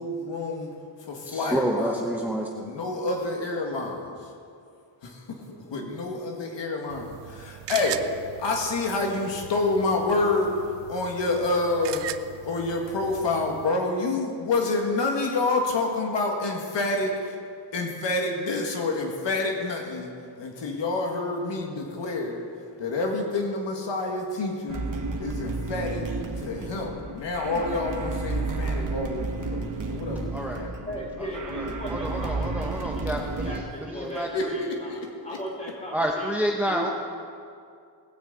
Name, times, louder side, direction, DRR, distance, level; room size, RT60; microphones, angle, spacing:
voice 1, 0.0-2.0 2.5-4.3 5.0-8.1 8.4-12.1 12.4-17.4 17.7-20.1 20.4-24.9 25.2-26.1 26.4-30.7 31.2-31.3 34.3-35.0 35.3-35.4, left 3 dB, 75° left, 1 dB, 1.9 m, -28 dB
voice 2, 1.3-2.5 30.3-30.6 31.2-34.5 35.9-36.9, right 1 dB, 5° right, 0 dB, 0.8 m, -29 dB
sound 1, 6.9-13.7, right 12 dB, 70° right, 0.6 m, -40 dB
sound 2, 24.7-33.6, right 3 dB, 45° right, 1.3 m, -32 dB
voice 3, 30.9-36.8, equal, 15° left, -3 dB, 3.7 m, -37 dB
19.0 x 6.4 x 8.0 m, 2.4 s
wide cardioid pair, 150°, 44 cm